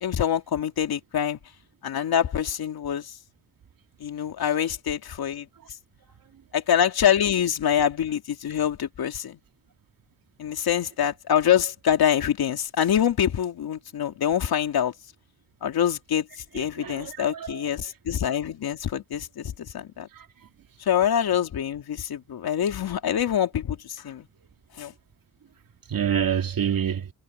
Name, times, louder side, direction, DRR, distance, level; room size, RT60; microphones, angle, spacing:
voice 1, 0.0-1.4 1.8-3.1 4.0-5.5 6.5-9.4 10.4-14.9 15.6-16.3 16.5-20.1 20.8-24.3 24.8-24.9, left 9 dB, 65° left, 2.9 m, -25 dB
voice 2, 16.5-17.6 20.1-20.3 25.9-27.1, right 8 dB, 60° right, 2.6 m, -27 dB
cardioid pair, 80°, 39 cm